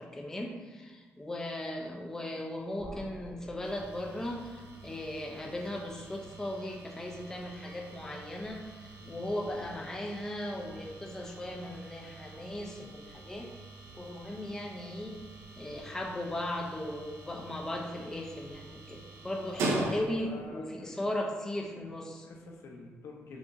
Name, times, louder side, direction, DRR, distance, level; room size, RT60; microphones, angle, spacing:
voice 1, 0.0-13.5 13.9-15.2 15.6-22.3, left 1 dB, 10° left, 0 dB, 0.5 m, -37 dB
sound 1, 2.8-8.7, left 1 dB, 10° right, 1.5 m, -54 dB
sound 2, 3.6-20.5, right 2 dB, 90° right, 0.6 m, -43 dB
voice 2, 19.9-20.9 22.2-23.4, left 3 dB, 80° left, 0 dB, 0.8 m, -48 dB
4.9 x 2.6 x 3.8 m, 1.4 s
cardioid pair, 140°, 5 cm